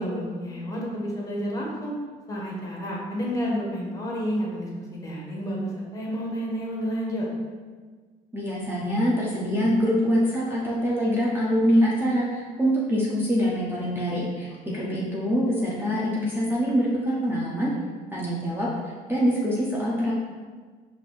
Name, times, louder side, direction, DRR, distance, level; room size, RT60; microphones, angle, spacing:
voice 1, 0.0-1.9 2.3-7.3 14.5-14.8, equal, 20° left, -3 dB, 1.1 m, -30 dB
voice 2, 8.3-17.7 18.1-20.1, equal, 10° right, -5 dB, 0.6 m, -24 dB
4.8 x 2.7 x 3.3 m, 1.5 s
cardioid pair, 110°, 17 cm